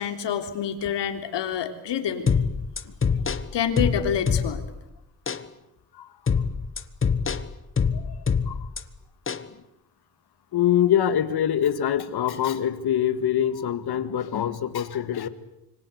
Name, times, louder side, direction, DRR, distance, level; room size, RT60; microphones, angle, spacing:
voice 1, 0.0-2.3 3.5-4.6, left 8 dB, 85° left, 7 dB, 3.4 m, -27 dB
sound 1, 2.3-4.8 5.3-5.4 6.3-8.8 9.3-9.5, left 6 dB, 30° left, 1.3 m, -25 dB
voice 2, 10.5-15.3, left 10 dB, 65° left, 12 dB, 1.9 m, -24 dB
26.5 x 25.0 x 8.2 m, 0.88 s
cardioid pair, 130°, 42 cm